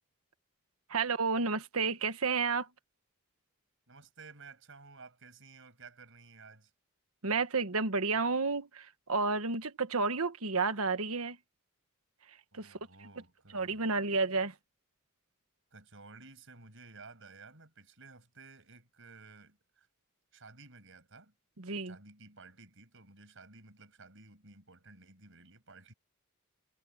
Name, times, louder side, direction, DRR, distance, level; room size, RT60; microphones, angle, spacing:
voice 1, 0.9-2.7 7.2-11.4 12.5-12.8 13.5-14.5 21.6-21.9, right 4 dB, 85° right, 1.5 m, -31 dB
voice 2, 3.9-6.7 12.5-13.8 15.7-19.9 20.3-21.4 21.8-25.9, right 3 dB, 65° right, 6.2 m, -54 dB
head